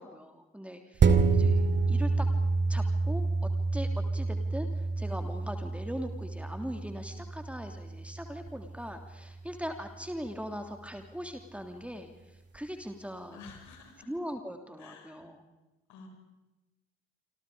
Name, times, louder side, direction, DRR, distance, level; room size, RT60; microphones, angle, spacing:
voice 1, 0.0-2.3 2.7-13.4 14.0-15.4, equal, 5° right, 6 dB, 3.1 m, -40 dB
sound 1, 1.0-9.8 10.3-10.4, right 4 dB, 35° right, 2.4 m, -28 dB
voice 2, 13.3-14.1 14.8-15.2 15.9-16.1, left 4 dB, 60° left, 4 dB, 6.6 m, -50 dB
27.5 x 27.0 x 5.1 m, 1.0 s
figure-of-eight pair, 55°, 33 cm